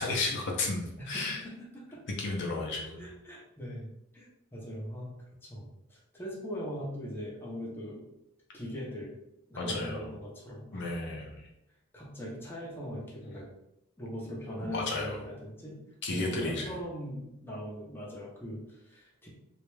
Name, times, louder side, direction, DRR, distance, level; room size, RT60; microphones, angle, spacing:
voice 1, 0.0-1.4 2.2-3.1 9.6-10.1 10.7-11.5 14.6-15.2 16.0-16.8, left 3 dB, 55° left, 0 dB, 0.4 m, -33 dB
voice 2, 1.0-2.0 2.7-5.1 5.4-8.1 8.5-9.1 9.5-10.8 11.9-13.5 14.0-15.8 16.1-19.3, equal, 10° left, -5 dB, 0.6 m, -40 dB
2.3 x 2.1 x 3.1 m, 0.84 s
head